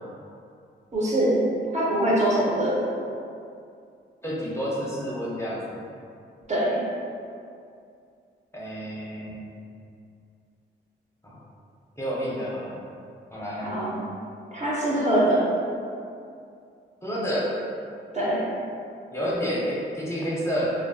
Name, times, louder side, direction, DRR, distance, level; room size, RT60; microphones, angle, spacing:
voice 1, 0.9-1.4 1.7-2.9 6.5-6.8 13.6-13.9 14.5-15.5 18.1-18.4, right 1 dB, 35° right, -6 dB, 0.7 m, -23 dB
voice 2, 4.2-5.8 8.5-9.4 12.0-12.8 13.3-13.8 17.0-17.5 19.1-20.7, equal, 15° left, -7 dB, 0.7 m, -29 dB
2.4 x 2.3 x 2.3 m, 2.4 s
cardioid pair, 55°, 20 cm